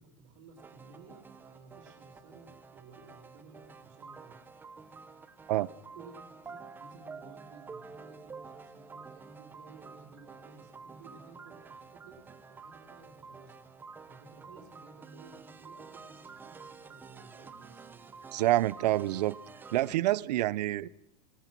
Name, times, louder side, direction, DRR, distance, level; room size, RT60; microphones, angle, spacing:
voice 1, 0.0-4.4 5.9-13.7 14.0-18.3, right 4 dB, 50° right, 5 dB, 4.2 m, -55 dB
sound 1, 0.6-20.0, right 5 dB, 10° right, 0.8 m, -50 dB
voice 2, 18.3-19.4 19.7-20.9, right 15 dB, 85° right, 22 dB, 0.8 m, -27 dB
21.5 x 19.5 x 6.1 m, 0.83 s
supercardioid pair, 175°, 21 cm